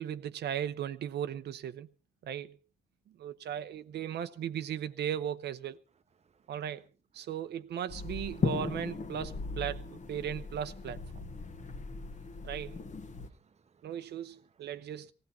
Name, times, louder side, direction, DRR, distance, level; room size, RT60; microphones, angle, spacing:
voice 1, 0.0-1.9 2.2-2.6 3.2-5.8 6.5-6.9 7.1-11.0 12.4-12.8 13.8-15.1, right 9 dB, 85° right, 0.7 m, -37 dB
voice 2, 6.2-6.6 11.3-12.7 13.1-15.1, right 6 dB, 40° right, 0.8 m, -68 dB
sound 1, 7.9-13.3, left 4 dB, 45° left, 1.2 m, -37 dB
17.5 x 16.0 x 4.2 m
cardioid pair, 90°, 17 cm